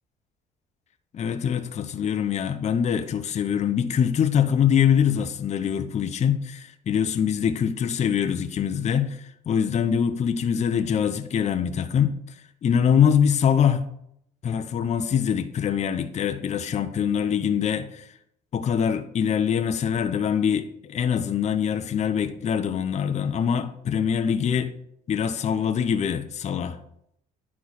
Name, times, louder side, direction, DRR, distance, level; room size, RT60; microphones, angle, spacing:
voice 1, 1.1-12.1 12.6-13.9 14.4-18.0 18.5-24.7 25.1-26.8, left 8 dB, 40° left, 0.8 m, -24 dB
9.6 x 4.6 x 5.8 m
cardioid pair, 110°, 17 cm